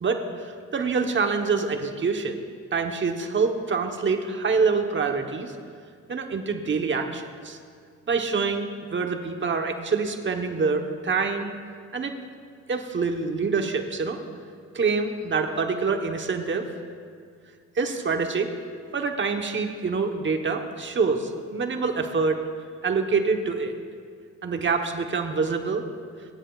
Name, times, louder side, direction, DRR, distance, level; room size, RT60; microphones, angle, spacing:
voice 1, 0.0-2.4 2.7-5.5 6.1-7.6 8.1-11.5 11.9-12.1 12.7-14.2 14.7-16.7 17.7-18.5 18.9-22.4 22.8-23.7 24.4-25.8, right 4 dB, 40° right, 4 dB, 1.1 m, -26 dB
26.0 x 10.0 x 2.4 m, 2.1 s
cardioid pair, 90°, 30 cm